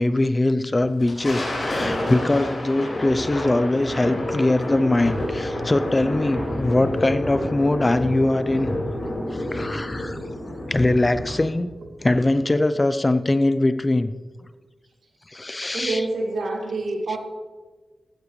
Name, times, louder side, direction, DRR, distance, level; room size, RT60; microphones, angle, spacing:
voice 1, 0.0-8.7 9.3-10.2 10.7-11.7 12.0-14.1 15.3-16.0, left 2 dB, 20° left, 12 dB, 0.6 m, -22 dB
Thunder, 0.8-11.6, left 1 dB, 40° left, 4.9 m, -29 dB
voice 2, 15.7-17.2, right 2 dB, 85° right, 1 dB, 2.3 m, -27 dB
15.5 x 12.0 x 3.2 m, 1.3 s
wide cardioid pair, 125°, 0 cm